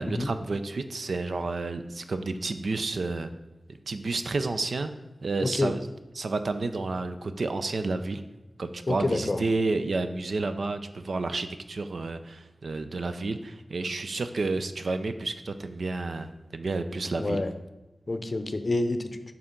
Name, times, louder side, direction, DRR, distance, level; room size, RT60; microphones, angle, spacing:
voice 1, 0.0-3.3 3.9-4.9 5.2-5.8 6.2-8.2 8.6-17.4, right 3 dB, 75° right, 9 dB, 0.5 m, -30 dB
voice 2, 5.4-5.7 8.9-9.4 17.2-17.5 18.1-19.1, left 2 dB, 40° left, 9 dB, 0.6 m, -27 dB
9.6 x 5.9 x 3.8 m, 1.1 s
wide cardioid pair, 70°, 0 cm